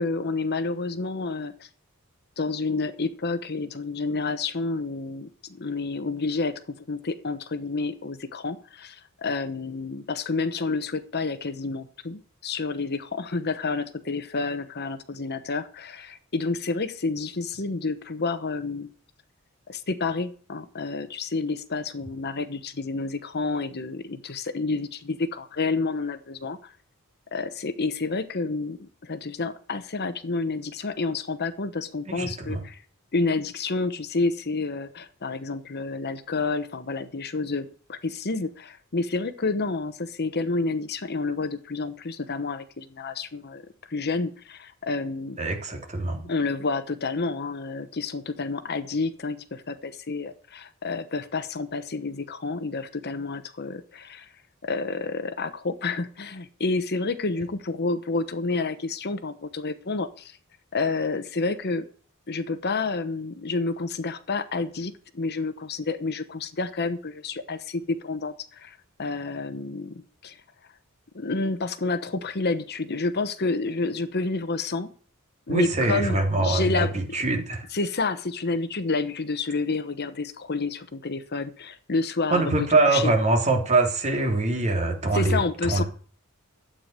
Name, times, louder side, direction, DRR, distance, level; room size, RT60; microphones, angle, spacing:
voice 1, 0.0-1.7 2.4-6.5 6.9-18.9 19.7-26.7 27.3-32.8 33.1-43.6 43.9-45.4 46.3-54.3 54.6-60.4 60.7-61.8 62.3-70.4 71.1-74.9 75.5-76.9 77.7-83.1 85.1-85.8, left 3 dB, 50° left, 11 dB, 1.0 m, -29 dB
voice 2, 32.1-32.6 45.4-46.3 75.5-77.7 82.3-85.8, right 2 dB, 30° right, 2 dB, 3.3 m, -24 dB
12.5 x 8.9 x 6.7 m, 0.42 s
head